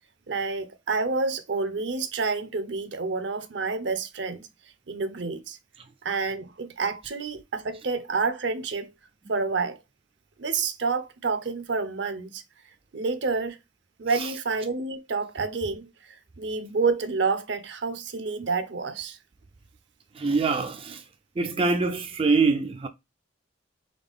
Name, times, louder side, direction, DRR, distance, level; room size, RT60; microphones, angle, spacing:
voice 1, 0.3-4.5 4.9-5.6 6.0-8.9 9.3-9.8 10.4-12.4 12.9-13.6 14.0-15.9 16.4-19.2, right 4 dB, 65° right, 0.7 m, -28 dB
voice 2, 20.1-21.0 21.4-22.9, right 4 dB, 30° right, 0.4 m, -24 dB
3.9 x 3.3 x 3.5 m
head